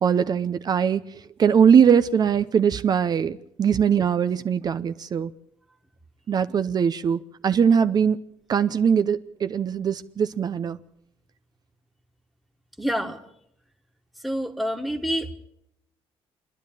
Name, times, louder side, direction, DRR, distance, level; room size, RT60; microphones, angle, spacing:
voice 1, 0.0-1.0 1.4-5.3 6.3-8.2 8.5-10.8, right 7 dB, 40° right, 0.7 m, -21 dB
voice 2, 12.8-13.2 14.2-15.3, equal, ahead, 1.7 m, -27 dB
27.5 x 10.5 x 9.0 m
cardioid pair, 130°, 10 cm